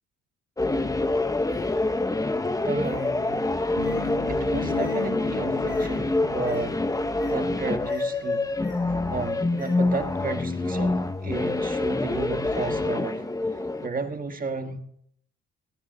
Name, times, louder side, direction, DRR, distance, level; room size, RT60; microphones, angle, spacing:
sound 1, 0.6-13.9, left 2 dB, 10° left, 0.8 m, -26 dB
Bird, 1.5-10.4, left 2 dB, 30° left, 7.7 m, -54 dB
voice 1, 2.6-3.5 4.2-6.9 7.3-8.5 9.1-13.3 13.8-14.8, right 4 dB, 30° right, 1.6 m, -33 dB
sound 2, 3.8-9.7, left 8 dB, 90° left, 1.4 m, -38 dB
17.5 x 17.0 x 2.7 m
cardioid pair, 90°, 30 cm